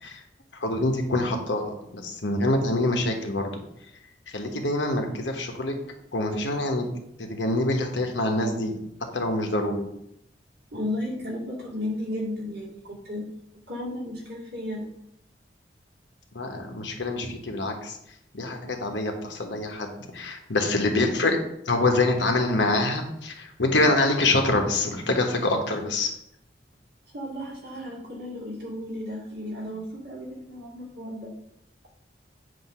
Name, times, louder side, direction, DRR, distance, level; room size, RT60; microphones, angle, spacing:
voice 1, 0.6-3.6 4.3-5.7 6.1-6.9 7.2-8.7 9.1-9.9 16.3-18.0 18.3-21.4 21.7-26.1, left 2 dB, 85° left, 3 dB, 1.1 m, -25 dB
voice 2, 10.7-13.2 13.7-14.9 27.0-31.3, left 1 dB, 65° right, -3 dB, 2.0 m, -34 dB
7.8 x 2.7 x 5.5 m, 0.78 s
head